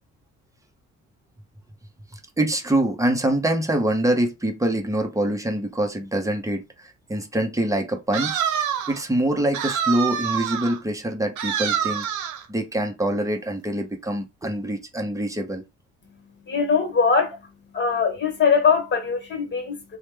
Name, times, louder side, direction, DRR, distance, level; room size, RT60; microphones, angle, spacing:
voice 1, 2.4-8.4 8.9-12.1 12.5-15.6, right 1 dB, 10° right, 0.7 m, -24 dB
sound 1, 8.1-9.0 9.5-10.8 11.4-12.4, right 8 dB, 75° right, 0.7 m, -26 dB
voice 2, 16.4-20.0, left 5 dB, 35° left, 1.3 m, -22 dB
3.1 x 2.1 x 3.3 m
cardioid pair, 90°, 30 cm